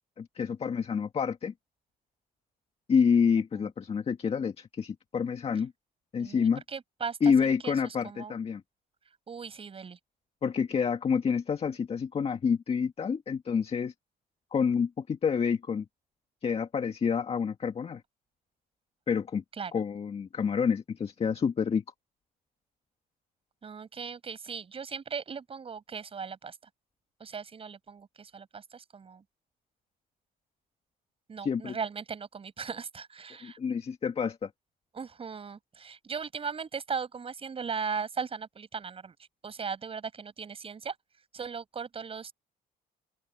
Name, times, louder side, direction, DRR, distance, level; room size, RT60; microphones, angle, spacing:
voice 1, 0.2-1.5 2.9-5.7 6.1-6.6 7.2-8.6 10.4-13.9 14.5-15.9 16.4-18.0 19.1-19.4 19.7-21.8 31.4-31.8 33.4-34.5, left 6 dB, 35° left, 1.8 m, -28 dB
voice 2, 6.2-8.3 9.3-10.0 19.6-19.7 23.6-26.6 27.2-29.2 31.3-33.6 34.9-39.1 39.4-40.9 41.3-42.3, right 6 dB, 35° right, 5.8 m, -38 dB
open air
cardioid pair, 110°, 17 cm